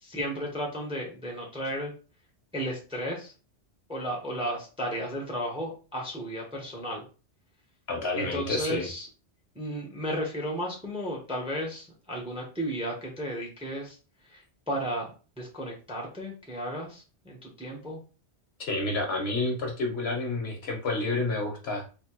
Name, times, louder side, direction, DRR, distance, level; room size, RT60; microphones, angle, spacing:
voice 1, 0.0-1.9 2.5-3.3 3.9-7.0 8.2-9.1 9.5-14.0 14.2-18.0, equal, 5° right, 0 dB, 0.7 m, -34 dB
voice 2, 7.9-8.9 18.7-21.9, left 2 dB, 65° left, 2 dB, 1.2 m, -29 dB
3.4 x 2.7 x 2.9 m, 0.35 s
omnidirectional pair, 1.2 m